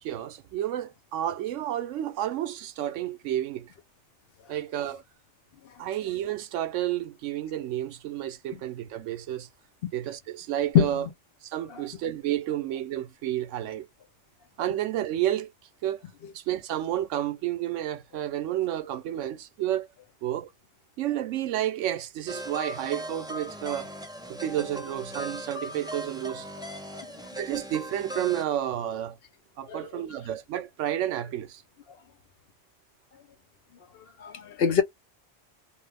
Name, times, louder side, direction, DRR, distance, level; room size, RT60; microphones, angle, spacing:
voice 1, 0.0-3.7 4.5-5.0 5.8-9.5 9.9-11.0 11.4-13.9 14.6-15.5 15.8-16.0 16.3-19.9 20.2-20.5 21.0-23.9 24.3-26.5 27.4-29.2 29.6-31.6, right 12 dB, 85° right, 0.9 m, -31 dB
voice 2, 10.7-11.1 11.7-11.8 26.6-26.7 26.9-27.1 29.7-29.9 33.9-34.8, left 8 dB, 60° left, 0.7 m, -25 dB
sound 1, 22.3-28.4, equal, 5° right, 0.4 m, -39 dB
3.1 x 2.1 x 3.3 m
omnidirectional pair, 1.2 m